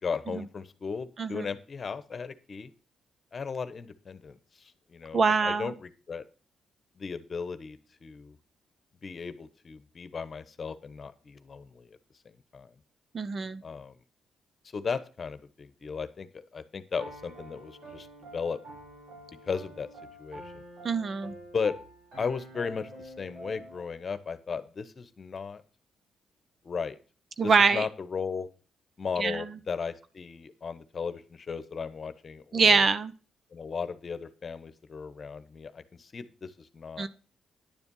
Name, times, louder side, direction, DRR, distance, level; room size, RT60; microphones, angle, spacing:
voice 1, 0.0-2.7 3.3-6.2 7.0-8.4 9.0-12.0 12.5-12.7 13.6-13.9 14.7-18.1 18.3-18.6 19.4-19.9 20.2-20.6 21.5-21.8 22.2-25.6 26.6-27.0 27.4-28.5 29.0-32.9 33.5-37.1, left 5 dB, 45° left, 12 dB, 1.1 m, -36 dB
voice 2, 5.1-5.7 13.1-13.6 20.8-21.3 27.4-27.9 29.2-29.5 32.5-33.1 37.0-37.1, right 5 dB, 45° right, 14 dB, 0.8 m, -24 dB
Piano, 17.0-23.8, right 1 dB, 75° right, 4.4 m, -47 dB
10.5 x 7.0 x 5.5 m, 0.35 s
cardioid pair, 85°, 0 cm